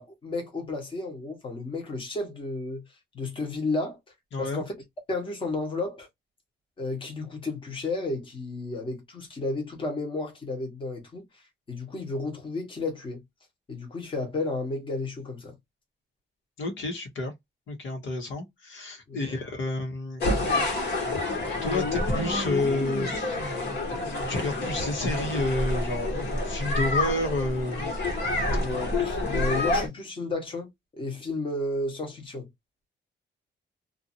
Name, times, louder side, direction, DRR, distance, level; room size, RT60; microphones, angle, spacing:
voice 1, 0.0-2.8 3.1-4.0 4.4-4.7 5.1-6.1 6.8-11.2 11.7-13.2 13.7-15.5 19.1-19.3 28.5-32.5, left 2 dB, 25° left, 1.1 m, -32 dB
voice 2, 4.3-4.6 16.6-17.3 17.7-20.7 21.6-23.7 24.3-27.9 28.2-28.6 29.2-29.3, left 2 dB, 80° left, 1.2 m, -30 dB
sound 1, 20.2-29.9, left 2 dB, 60° left, 1.6 m, -28 dB
2.7 x 2.5 x 2.6 m
wide cardioid pair, 180°, 19 cm